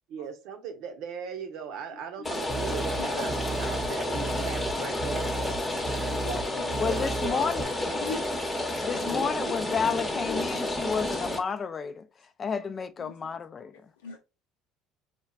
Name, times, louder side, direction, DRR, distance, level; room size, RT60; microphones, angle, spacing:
voice 1, 0.1-5.3 5.7-6.1 6.8-7.8 9.1-9.6, right 7 dB, 65° right, 0.8 m, -39 dB
voice 2, 2.2-4.0 5.2-5.3 6.1-6.9 8.0-8.3 8.6-8.8 10.3-10.5 13.0-13.3 14.0-14.2, left 4 dB, 90° left, 0.7 m, -41 dB
Rain, 2.2-11.4, left 1 dB, 15° left, 0.9 m, -31 dB
sound 1, 2.5-7.6, right 4 dB, 20° right, 0.6 m, -36 dB
voice 3, 6.8-7.7 8.8-12.1 12.4-13.7, left 6 dB, 35° left, 0.4 m, -31 dB
4.3 x 2.3 x 2.3 m
hypercardioid pair, 75°, 0 cm